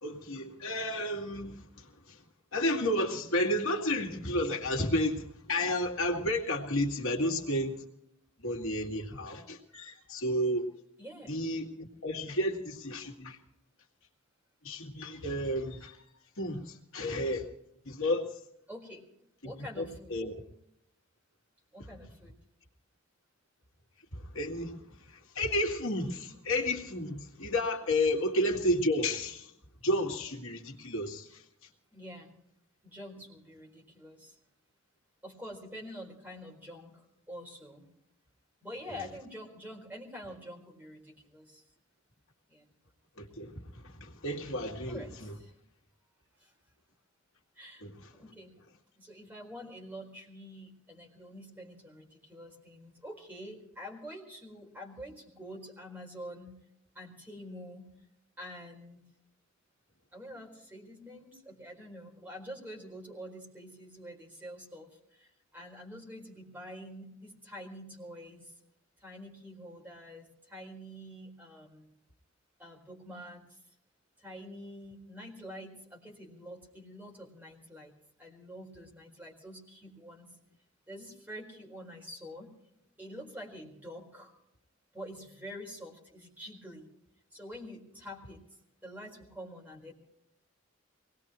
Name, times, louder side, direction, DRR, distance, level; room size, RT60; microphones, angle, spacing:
voice 1, 0.0-2.2 2.5-7.8 8.4-10.7 11.3-13.4 14.6-16.0 16.4-17.5 17.9-18.3 19.4-19.5 19.8-20.3 24.3-24.9 25.1-29.5 29.8-31.4 43.2-43.5 43.8-45.3 47.8-47.9, left 1 dB, 75° left, 2.1 m, -32 dB
voice 2, 11.0-11.3 18.7-19.1 19.4-20.1 21.7-22.3 28.1-28.2 31.9-32.3 32.8-34.3 35.2-37.9 38.6-41.6 42.5-42.6 44.9-45.5 46.4-46.5 47.6-47.8 48.1-48.5 48.9-56.6 56.9-57.9 58.4-59.0 60.1-68.5 69.0-71.9 72.6-73.6 74.2-77.9 78.2-80.3 80.9-82.5 83.0-84.3 84.9-86.9 87.3-88.4 88.8-89.9, equal, 10° right, 4.3 m, -46 dB
24.0 x 19.5 x 3.0 m
head